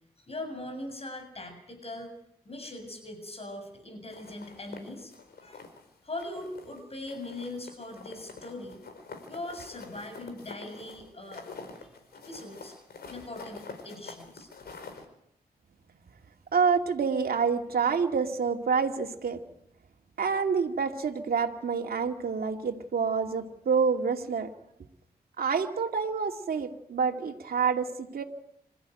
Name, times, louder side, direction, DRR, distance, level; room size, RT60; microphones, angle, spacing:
voice 1, 0.2-2.1 2.5-5.1 5.4-5.6 6.0-8.8 9.3-11.5 12.3-12.7 13.1-14.5, left 2 dB, 40° left, 6 dB, 7.3 m, -40 dB
sound 1, 4.1-5.9 6.2-6.8 7.1-15.1, left 4 dB, 75° left, 4.9 m, -46 dB
voice 2, 16.5-19.4 20.2-24.5 25.4-28.2, right 5 dB, 70° right, 3 dB, 2.6 m, -27 dB
27.0 x 14.0 x 9.3 m, 0.75 s
cardioid pair, 85°, 16 cm